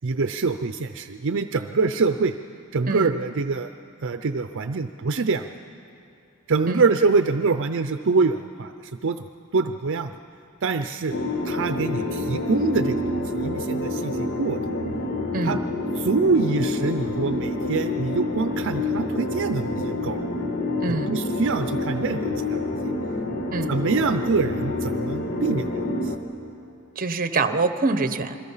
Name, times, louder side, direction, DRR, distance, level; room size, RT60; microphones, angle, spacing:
voice 1, 0.0-2.3 2.7-3.7 4.0-5.4 6.5-8.7 9.0-9.2 9.5-10.1 10.6-11.2 11.4-13.0 13.3-14.8 15.4-15.6 16.0-20.2 20.9-22.9 23.7-26.1, right 4 dB, 60° right, 9 dB, 0.6 m, -25 dB
sound 1, 11.1-26.2, left 2 dB, 50° left, 1.8 m, -28 dB
voice 2, 20.8-21.1 23.5-23.7 27.0-28.4, right 3 dB, 40° right, 10 dB, 1.0 m, -25 dB
29.0 x 22.0 x 5.6 m, 2.6 s
head